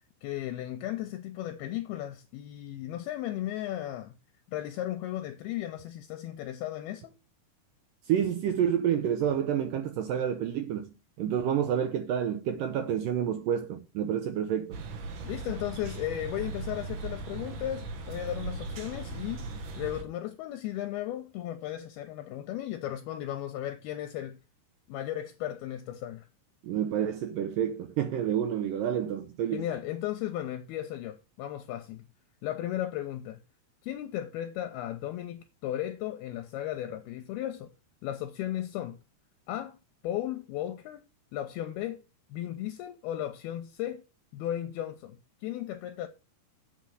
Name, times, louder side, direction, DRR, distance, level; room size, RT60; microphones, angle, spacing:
voice 1, 0.2-4.2 4.5-7.1 15.2-19.5 19.8-24.4 24.9-26.3 29.5-32.0 32.4-33.4 33.8-37.7 38.0-39.0 39.5-39.8 40.0-41.0 41.3-42.0 42.3-44.1 44.3-46.1, left 13 dB, 80° left, 2.5 m, -35 dB
voice 2, 8.1-14.8 26.6-29.7, right 9 dB, 80° right, 2.0 m, -29 dB
sound 1, 14.7-20.0, right 3 dB, 60° right, 2.6 m, -38 dB
8.4 x 5.1 x 7.6 m
omnidirectional pair, 4.8 m